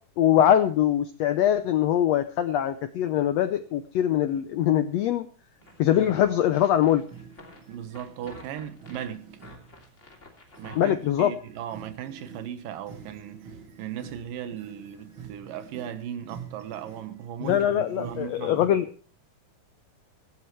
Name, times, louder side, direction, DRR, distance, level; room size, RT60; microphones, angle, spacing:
voice 1, 0.2-5.3 5.8-7.0 10.8-11.3 17.4-18.9, left 11 dB, 90° left, 1.4 m, -22 dB
sound 1, 5.6-10.8, left 2 dB, 20° left, 2.9 m, -49 dB
sound 2, 5.6-10.0 10.4-18.7, right 6 dB, 50° right, 1.8 m, -47 dB
voice 2, 7.7-9.2 10.6-13.4 13.8-18.7, right 9 dB, 80° right, 2.8 m, -37 dB
16.5 x 15.5 x 3.2 m
omnidirectional pair, 3.9 m